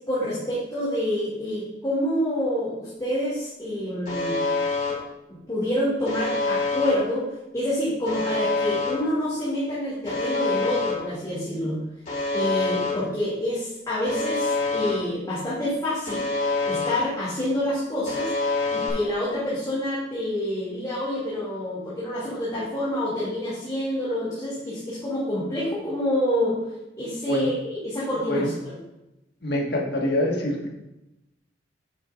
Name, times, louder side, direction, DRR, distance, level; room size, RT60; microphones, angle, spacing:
voice 1, 0.1-4.4 5.5-7.3 7.5-11.8 12.3-16.3 16.6-18.3 18.7-26.6 27.0-28.8, left 1 dB, 20° left, -9 dB, 2.5 m, -27 dB
Alarm, 4.1-4.9 6.1-6.9 8.1-8.9 10.1-10.9 12.1-12.9 14.1-14.9 16.1-16.9 18.1-18.9, left 3 dB, 45° left, 3.0 m, -26 dB
voice 2, 29.4-30.7, left 1 dB, 65° left, 0 dB, 1.7 m, -25 dB
9.1 x 8.6 x 2.6 m, 0.92 s
head